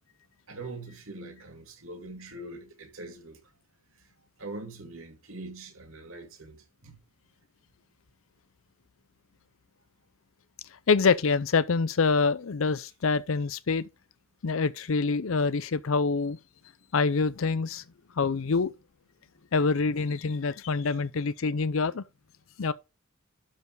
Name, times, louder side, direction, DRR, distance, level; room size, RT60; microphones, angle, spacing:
voice 1, 0.5-3.5 4.0-4.1 4.4-7.0 20.8-21.0, right 2 dB, 70° right, 2.6 m, -43 dB
voice 2, 10.9-13.9 14.4-16.4 16.9-17.8 18.2-18.7 19.5-22.0 22.6-22.7, left 4 dB, 65° left, 0.6 m, -26 dB
12.0 x 4.5 x 4.6 m
head